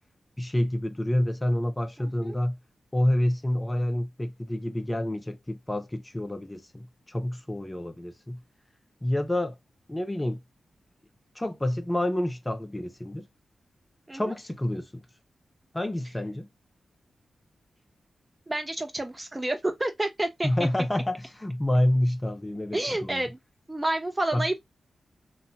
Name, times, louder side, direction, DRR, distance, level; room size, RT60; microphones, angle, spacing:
voice 1, 0.4-2.6 2.9-8.4 9.0-9.6 9.9-10.4 11.4-13.3 14.1-15.0 15.7-16.5 20.4-23.2 24.3-24.5, left 1 dB, 15° left, 0.4 m, -28 dB
voice 2, 2.0-2.4 14.1-14.3 18.5-20.7 22.7-23.4 23.7-24.6, right 1 dB, 20° right, 0.8 m, -29 dB
2.7 x 2.2 x 2.7 m
cardioid pair, 60°, 0 cm